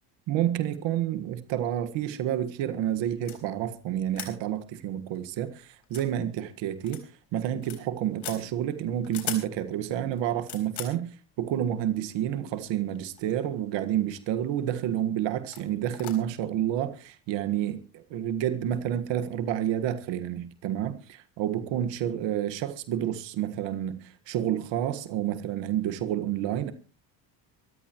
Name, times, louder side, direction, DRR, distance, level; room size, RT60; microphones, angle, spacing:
voice 1, 0.3-26.7, right 11 dB, 75° right, 1.7 m, -29 dB
sound 1, 3.2-3.4 4.1-4.3 4.7-4.8 5.1-5.2 5.8-6.1 6.8-7.0 7.3-7.8 8.2-8.4 9.0-9.5 10.1-11.0 12.0-12.1 12.9-13.5 13.7-14.2 14.7-14.9 15.5-15.7 15.9-16.1, left 9 dB, 60° left, 4.2 m, -38 dB
24.0 x 14.5 x 3.0 m
cardioid pair, 120°, 45 cm